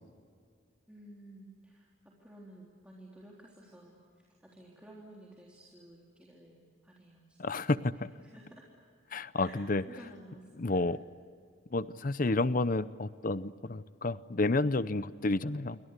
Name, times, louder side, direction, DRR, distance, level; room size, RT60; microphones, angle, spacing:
voice 1, 0.9-7.4 8.2-8.7 9.3-10.8, right 1 dB, 5° right, -4 dB, 3.6 m, -53 dB
voice 2, 7.4-8.1 9.1-9.8 10.6-11.0 11.7-15.8, left 2 dB, 40° left, 15 dB, 0.7 m, -30 dB
29.0 x 24.0 x 8.3 m, 2.1 s
head